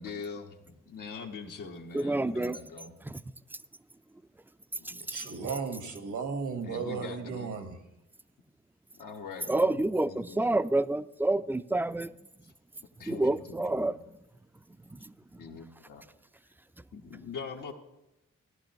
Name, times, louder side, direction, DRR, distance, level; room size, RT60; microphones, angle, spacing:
voice 1, 0.0-2.9 4.8-5.1 5.9-6.0 6.6-7.5 8.9-10.6 13.0-13.4 13.7-13.8 15.4-16.0 16.9-17.7, left 5 dB, 90° left, 1.3 m, -43 dB
voice 2, 1.9-2.6 3.0-3.2 4.8-5.0 9.5-12.1 13.0-14.0 14.9-15.4, right 2 dB, 5° right, 0.3 m, -28 dB
voice 3, 5.1-7.8, right 5 dB, 75° right, 1.4 m, -35 dB
16.0 x 11.0 x 2.9 m
cardioid pair, 55°, 30 cm